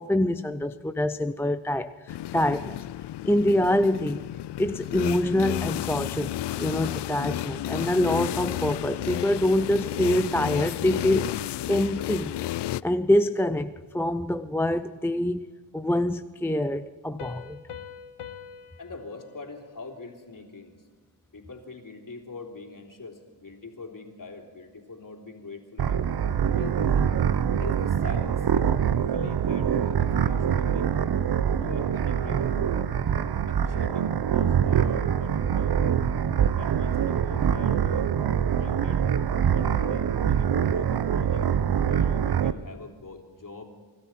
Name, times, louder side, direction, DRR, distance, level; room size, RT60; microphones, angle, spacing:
voice 1, 0.0-2.8 3.2-4.2 4.6-11.2 11.7-12.3 12.8-15.5 15.7-17.6, left 1 dB, 5° left, 0.4 m, -25 dB
sound 1, 2.1-12.8, left 14 dB, 55° left, 0.5 m, -32 dB
Piano, 17.2-20.6, left 8 dB, 80° left, 1.1 m, -45 dB
voice 2, 18.8-20.8 21.3-26.0 26.5-27.1 27.6-30.9 31.6-32.4 33.5-35.8 36.5-39.0 39.4-41.4 41.7-43.7, left 3 dB, 40° left, 3.3 m, -43 dB
sound 2, 25.8-42.5, right 8 dB, 50° right, 0.9 m, -24 dB
25.5 x 13.0 x 4.4 m
cardioid pair, 75°, 50 cm